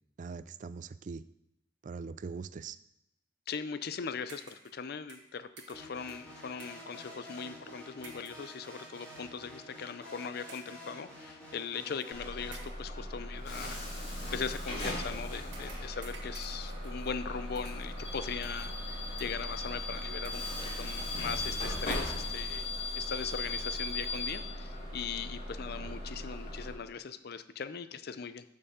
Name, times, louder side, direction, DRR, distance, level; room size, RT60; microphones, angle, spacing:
voice 1, 0.2-1.2 1.8-2.8 25.8-25.9, right 5 dB, 45° right, 16 dB, 0.3 m, -42 dB
voice 2, 3.5-13.8 14.3-22.7 23.0-28.4, left 6 dB, 55° left, 13 dB, 0.5 m, -40 dB
sound 1, 4.3-4.8 5.1-6.9 8.0-8.5 9.2-9.4 10.5-10.9 12.0-12.1 12.5-12.9 14.4-14.8 15.5-17.3 17.6-18.0 18.4-18.8 19.2-19.6 20.1-20.6 21.0-21.1 21.4-21.6 21.9-22.3, right 5 dB, 75° right, 1.6 m, -54 dB
sound 2, 5.7-12.6, equal, 10° left, 3.6 m, -49 dB
Bus / Alarm, 12.1-26.7, left 2 dB, 35° left, 3.7 m, -38 dB
12.0 x 6.7 x 3.7 m, 0.83 s
head